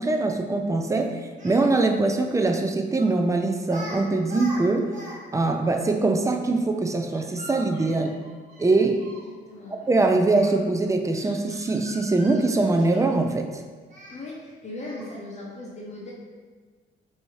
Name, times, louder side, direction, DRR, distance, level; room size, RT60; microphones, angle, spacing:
voice 1, 0.0-4.9 5.3-8.2 8.6-9.0 9.9-13.6, right 2 dB, 15° right, 5 dB, 0.3 m, -23 dB
Speech, 1.4-1.6 3.0-3.2 3.7-5.2 5.4-5.5 7.1-9.3 10.3-10.5 11.1-13.3 13.9-14.2 14.8-15.2, right 1 dB, 40° right, 1.3 m, -42 dB
voice 2, 9.5-9.9 14.1-16.1, left 2 dB, 35° left, -4 dB, 0.8 m, -38 dB
4.5 x 2.7 x 3.1 m, 1.5 s
cardioid pair, 90°, 20 cm